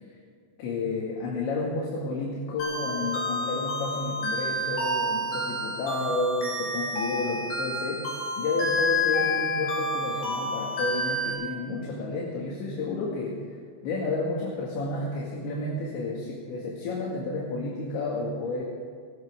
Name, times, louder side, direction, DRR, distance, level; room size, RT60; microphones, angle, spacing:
voice 1, 0.6-8.1 8.4-13.4 13.8-18.6, left 3 dB, 75° left, -3 dB, 4.4 m, -31 dB
sound 1, 2.6-11.3, left 1 dB, 60° left, 5.3 m, -29 dB
21.5 x 18.0 x 3.7 m, 2.1 s
omnidirectional pair, 5.3 m